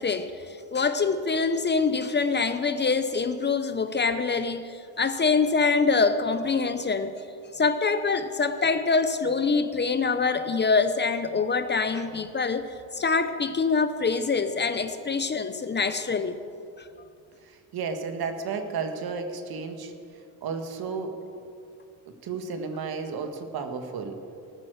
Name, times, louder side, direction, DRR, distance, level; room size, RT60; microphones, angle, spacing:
voice 1, 0.0-7.2 7.5-16.3 16.8-16.9, left 4 dB, 25° left, 10 dB, 0.7 m, -25 dB
voice 2, 17.4-19.9 20.4-21.1 22.2-24.2, right 5 dB, 55° right, 6 dB, 1.7 m, -33 dB
18.5 x 9.7 x 6.5 m, 2.5 s
cardioid pair, 120°, 45 cm